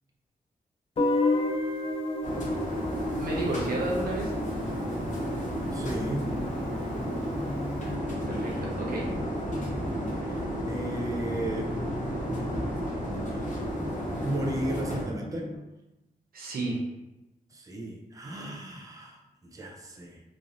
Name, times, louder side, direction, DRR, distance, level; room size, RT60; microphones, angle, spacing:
Guitar, 1.0-5.8, left 2 dB, 40° left, 0.4 m, -31 dB
sound 1, 2.2-15.0, equal, 55° left, 0.8 m, -32 dB
voice 1, 3.2-4.3 8.3-9.1 16.3-16.8, right 2 dB, 85° right, -2 dB, 0.7 m, -31 dB
sound 2, 4.4-15.6, left 1 dB, 90° left, 1.1 m, -40 dB
voice 2, 5.7-6.3 10.2-10.4 10.7-11.8 13.3-13.4 14.2-15.5 17.5-20.2, right 1 dB, 20° right, 0 dB, 0.5 m, -35 dB
3.1 x 2.5 x 2.6 m, 1.0 s
cardioid pair, 85°, 15 cm